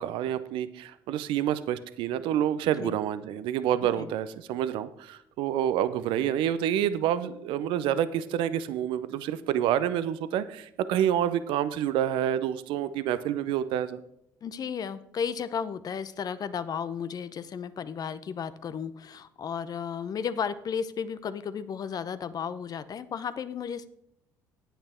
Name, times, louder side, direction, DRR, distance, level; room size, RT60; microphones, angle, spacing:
voice 1, 0.0-14.0, right 10 dB, 70° right, 13 dB, 0.6 m, -28 dB
voice 2, 14.4-23.9, left 7 dB, 45° left, 14 dB, 0.7 m, -34 dB
9.1 x 8.8 x 4.3 m, 0.75 s
supercardioid pair, 70°, 9 cm